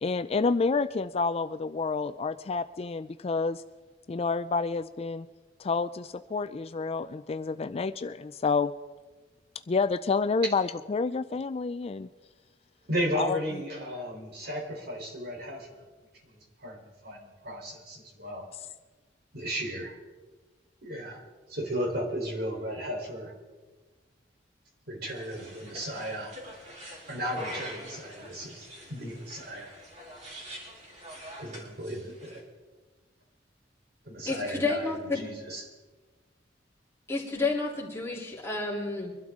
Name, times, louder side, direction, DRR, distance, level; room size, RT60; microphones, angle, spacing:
voice 1, 0.0-3.6 4.1-5.3 5.6-8.7 9.7-12.1 13.2-13.4, left 4 dB, 35° left, 11 dB, 0.4 m, -29 dB
voice 2, 12.9-15.8 16.3-18.5 19.3-20.0 20.8-21.2 21.5-23.3 24.9-26.3 27.1-29.8 31.4-32.4 34.1-35.6, equal, 60° right, 0 dB, 3.7 m, -35 dB
sound 1, 25.0-32.4, equal, 40° right, 3.7 m, -45 dB
voice 3, 34.2-35.2 37.1-39.1, left 3 dB, 15° left, -4 dB, 3.1 m, -30 dB
24.0 x 12.5 x 3.7 m, 1.3 s
head